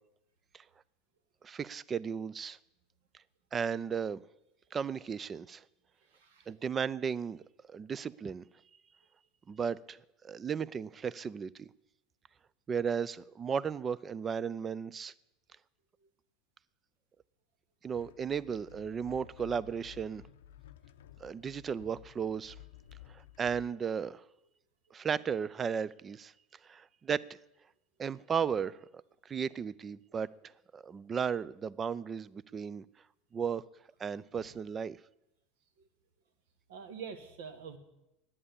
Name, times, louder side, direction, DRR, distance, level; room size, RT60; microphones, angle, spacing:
voice 1, 1.4-2.6 3.5-4.2 4.7-5.6 6.5-7.4 7.7-8.5 9.5-10.0 10.2-11.7 12.7-15.1 17.8-20.2 21.2-22.6 23.1-24.2 24.9-26.3 26.6-27.2 28.0-28.8 29.3-30.3 30.7-32.8 33.3-33.6 34.0-35.0, right 7 dB, 30° right, 0.5 m, -35 dB
voice 2, 6.1-6.5 36.7-37.8, right 6 dB, 70° right, 1.6 m, -45 dB
sound 1, 17.9-23.7, left 12 dB, 70° left, 0.6 m, -54 dB
11.0 x 8.8 x 8.4 m
hypercardioid pair, 80°, 0 cm